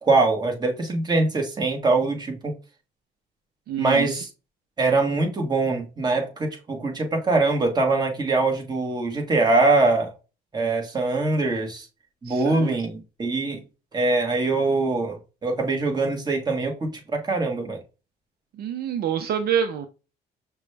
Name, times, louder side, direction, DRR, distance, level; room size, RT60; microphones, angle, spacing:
voice 1, 0.0-2.5 3.8-4.3 4.8-10.1 10.5-11.9 12.2-13.6 13.9-17.8, right 3 dB, 25° right, 1.4 m, -23 dB
voice 2, 3.7-4.1 12.3-12.8 18.6-19.9, right 8 dB, 70° right, 0.6 m, -27 dB
6.0 x 2.3 x 3.3 m
cardioid pair, 110°, 17 cm